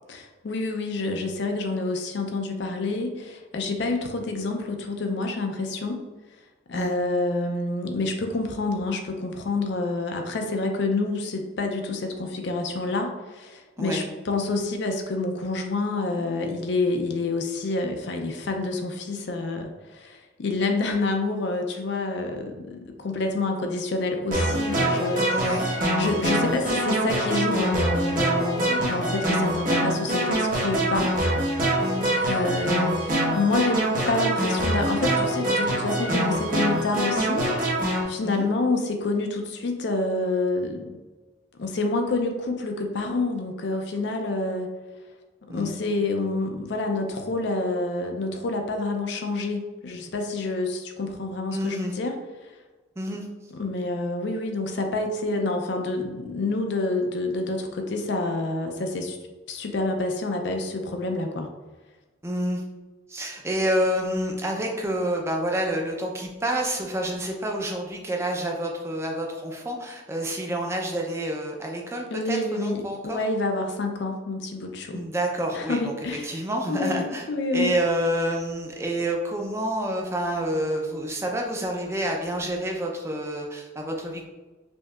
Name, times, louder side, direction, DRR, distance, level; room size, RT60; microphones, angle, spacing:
voice 1, 0.1-6.0 6.7-31.1 32.2-37.5 37.8-41.0 41.6-44.7 45.5-52.2 53.5-59.2 59.5-61.5 72.1-75.0 75.5-76.4 76.7-77.7, left 2 dB, 60° left, 4 dB, 0.4 m, -28 dB
sound 1, 24.3-38.0, right 1 dB, 45° right, 0.9 m, -24 dB
voice 2, 25.3-25.6 31.8-32.0 38.2-38.5 45.5-45.8 51.5-51.9 53.0-53.3 62.2-62.6 63.1-73.2 74.9-84.2, right 1 dB, 15° right, 1 dB, 0.4 m, -28 dB
5.2 x 2.7 x 2.3 m, 1.2 s
head